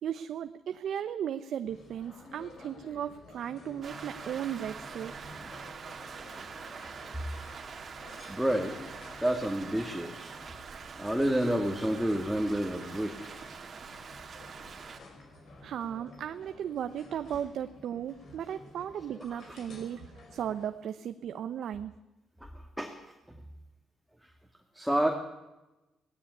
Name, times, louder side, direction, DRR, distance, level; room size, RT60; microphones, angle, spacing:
voice 1, 0.0-5.1 15.6-21.9, right 9 dB, 70° right, 10 dB, 0.8 m, -36 dB
sound 1, 1.7-20.7, left 3 dB, 55° left, 5.2 m, -52 dB
Rain, 3.8-15.0, right 6 dB, 45° right, 2.2 m, -45 dB
voice 2, 8.3-8.8 9.2-10.3 11.0-13.3 22.4-22.5 22.8-22.9 24.7-25.1, right 1 dB, ahead, 2 dB, 2.4 m, -29 dB
17.5 x 16.5 x 9.7 m, 1.0 s
cardioid pair, 90°, 0 cm